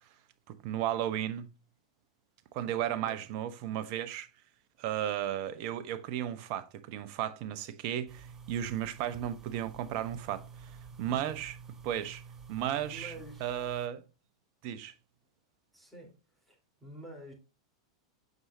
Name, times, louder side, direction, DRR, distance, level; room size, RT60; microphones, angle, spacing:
voice 1, 0.5-1.5 2.5-4.3 4.8-10.7 11.0-11.5 11.8-12.2 12.5-13.1 13.4-14.0 14.6-14.9, right 11 dB, 50° right, 1.0 m, -34 dB
sound 1, 8.1-13.9, right 6 dB, 20° right, 1.1 m, -49 dB
voice 2, 12.8-13.5 15.7-16.1 16.4-17.3, right 1 dB, ahead, 3.9 m, -49 dB
9.4 x 6.4 x 2.8 m
figure-of-eight pair, 95°, 3 cm